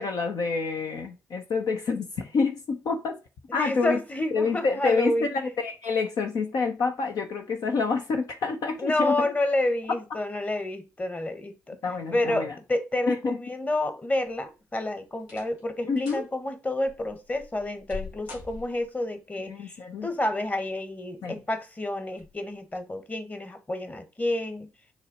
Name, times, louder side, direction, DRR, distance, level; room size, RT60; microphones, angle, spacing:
voice 1, 0.0-3.2 3.5-4.0 4.3-9.3 11.8-12.5 13.1-13.4 15.8-16.2 19.5-20.1 21.2-21.3, left 4 dB, 55° left, 0.8 m, -28 dB
voice 2, 3.5-5.5 8.8-19.8 20.0-24.7, left 1 dB, 20° left, 1.4 m, -29 dB
sound 1, 14.3-14.7 15.2-15.6 16.0-16.3 16.9-19.0 20.3-20.8 21.3-21.4 22.1-22.3 22.7-22.8, left 4 dB, 75° left, 1.9 m, -43 dB
6.5 x 3.2 x 5.0 m
figure-of-eight pair, 40°, 8 cm